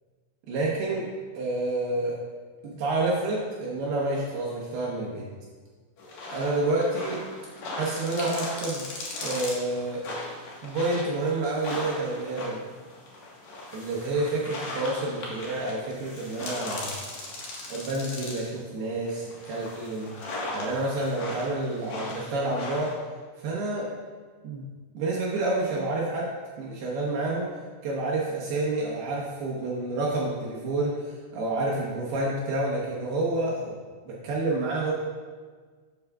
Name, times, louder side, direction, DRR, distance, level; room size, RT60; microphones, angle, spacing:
voice 1, 0.5-1.1 1.3-2.1 2.6-5.3 6.3-7.2 7.7-8.9 9.2-10.0 10.6-12.6 13.7-16.9 17.7-20.1 20.5-22.9 23.4-23.9 24.4-24.7 24.9-26.3 26.6-27.5 27.8-33.8 34.1-34.9, right 2 dB, 70° right, -5 dB, 2.5 m, -29 dB
sound 1, 6.0-18.6 19.1-22.9, left 2 dB, 80° left, 1.6 m, -38 dB
12.5 x 8.1 x 2.4 m, 1.5 s
omnidirectional pair, 5.8 m